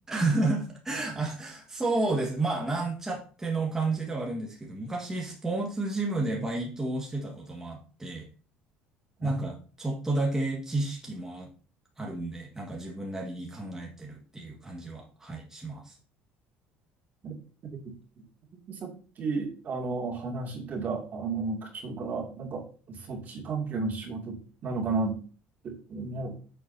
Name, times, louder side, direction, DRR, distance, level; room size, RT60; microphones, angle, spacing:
voice 1, 0.1-8.3 9.2-11.5 12.0-16.0, right 2 dB, 10° right, -2 dB, 1.7 m, -31 dB
voice 2, 19.2-25.2 25.6-26.3, right 3 dB, 45° right, 1 dB, 2.5 m, -33 dB
8.4 x 7.0 x 2.8 m, 0.38 s
cardioid pair, 105°, 4 cm